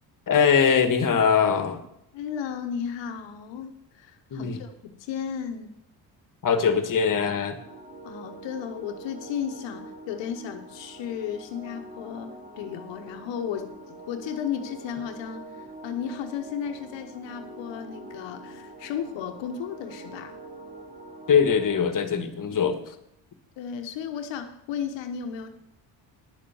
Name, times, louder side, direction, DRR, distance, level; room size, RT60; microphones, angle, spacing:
voice 1, 0.3-1.8 4.3-4.6 6.4-7.6 21.3-22.8, left 6 dB, 45° left, 9 dB, 1.5 m, -22 dB
voice 2, 2.1-5.7 8.0-20.4 23.6-25.5, left 8 dB, 70° left, 6 dB, 1.1 m, -34 dB
sound 1, 7.1-21.8, right 2 dB, 15° right, 2.1 m, -44 dB
10.0 x 6.8 x 6.9 m, 0.79 s
supercardioid pair, 70°, 46 cm